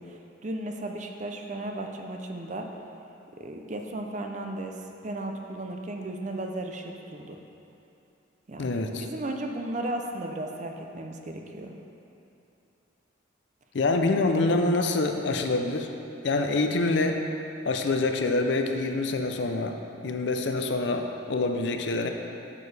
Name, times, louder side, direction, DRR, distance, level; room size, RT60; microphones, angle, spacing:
voice 1, 0.0-2.7 3.4-4.7 5.0-7.4 8.5-11.7, right 1 dB, 40° right, 3 dB, 0.5 m, -35 dB
voice 2, 8.6-9.1 13.7-15.9 16.2-17.2 17.7-19.8 20.0-22.1, left 2 dB, 60° left, 5 dB, 0.5 m, -26 dB
8.3 x 6.8 x 3.4 m, 2.8 s
head